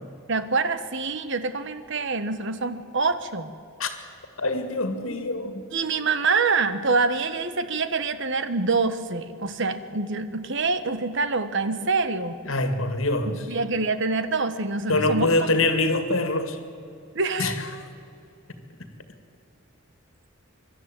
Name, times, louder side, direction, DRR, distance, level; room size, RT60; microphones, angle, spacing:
voice 1, 0.3-3.5 5.7-12.4 13.5-15.3 17.1-17.5, right 4 dB, 60° right, 11 dB, 1.2 m, -25 dB
voice 2, 4.4-5.6 12.4-13.5 14.9-16.6 17.4-17.9, left 2 dB, 75° left, 8 dB, 2.2 m, -24 dB
23.5 x 12.5 x 9.1 m, 2.6 s
head